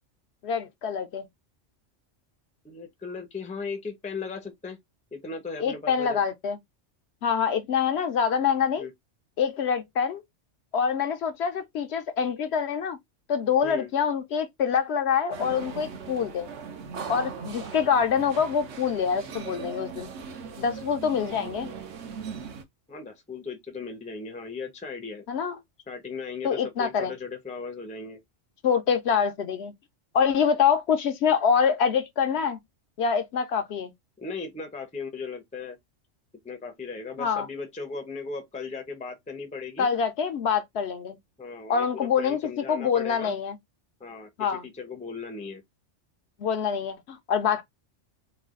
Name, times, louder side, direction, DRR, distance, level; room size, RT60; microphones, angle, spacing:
voice 1, 0.4-1.2 5.6-6.6 7.2-8.9 9.4-10.2 10.7-13.0 13.3-16.5 17.1-20.1 20.6-21.7 25.3-25.5 26.4-27.1 28.6-29.7 30.1-32.6 33.0-33.9 37.2-37.5 39.8-41.2 41.7-43.6 44.4-44.7 46.4-47.6, left 7 dB, 70° left, 0.8 m, -25 dB
voice 2, 2.6-4.8 5.1-6.2 8.8-8.9 13.6-13.9 22.9-25.2 25.9-28.2 34.2-35.8 36.4-39.9 41.4-43.3 44.0-45.6, left 4 dB, 10° left, 0.4 m, -37 dB
sound 1, 15.3-22.6, right 5 dB, 70° right, 1.0 m, -39 dB
3.2 x 2.3 x 3.6 m
omnidirectional pair, 1.2 m